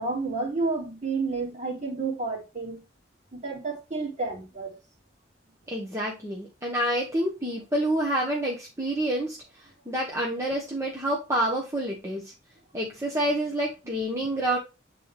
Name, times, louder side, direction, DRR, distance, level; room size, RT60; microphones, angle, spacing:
voice 1, 0.0-2.8 3.3-4.7, right 3 dB, 40° right, 2.1 m, -30 dB
voice 2, 5.7-9.4 9.9-12.3 12.7-14.6, right 1 dB, 15° right, 1.0 m, -28 dB
7.6 x 3.9 x 3.3 m
head